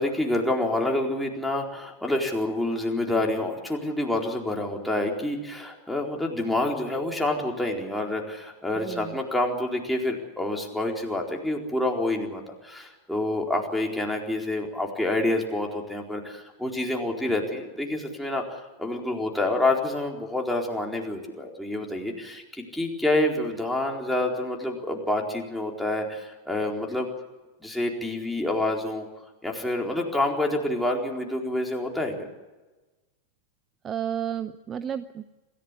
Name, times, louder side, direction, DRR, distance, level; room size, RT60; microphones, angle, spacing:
voice 1, 0.0-27.1 27.6-29.1 29.4-32.3, left 1 dB, ahead, 0 dB, 4.3 m, -28 dB
voice 2, 8.8-9.2 33.8-35.3, right 9 dB, 25° right, 12 dB, 0.8 m, -32 dB
27.0 x 15.5 x 8.5 m, 1.2 s
figure-of-eight pair, 90°, 0 cm